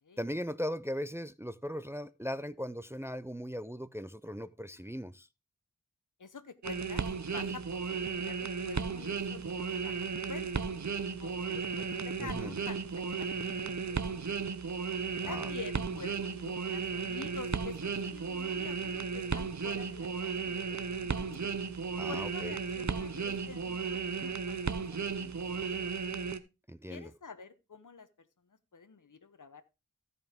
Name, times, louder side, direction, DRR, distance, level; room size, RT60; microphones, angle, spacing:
voice 1, 0.2-5.3 12.2-12.5 15.2-15.5 22.0-22.5 26.7-27.1, equal, 10° right, 0.4 m, -38 dB
voice 2, 6.2-7.1 7.3-10.0 10.3-10.6 11.2-14.5 15.3-21.4 22.1-25.9 26.9-29.6, left 5 dB, 70° left, 0.9 m, -48 dB
sound 1, 6.6-26.4, right 5 dB, 60° right, 0.7 m, -35 dB
14.5 x 5.4 x 3.4 m
wide cardioid pair, 45°, 32 cm